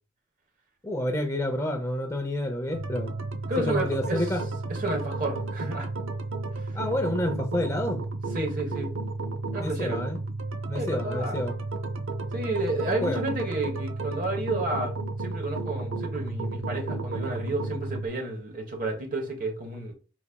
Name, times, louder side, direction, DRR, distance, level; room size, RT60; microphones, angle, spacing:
voice 1, 0.8-3.2 3.7-4.4 6.7-8.0 9.6-10.2 10.7-11.5 12.9-13.2, left 1 dB, 15° left, 0.6 m, -29 dB
sound 1, 2.7-18.1, right 3 dB, 80° right, 0.6 m, -33 dB
voice 2, 3.5-4.3 4.7-5.9 6.6-6.7 8.3-9.0 9.5-10.0 10.7-11.4 12.3-19.9, right 2 dB, 40° right, 1.1 m, -31 dB
4.8 x 4.1 x 2.3 m
head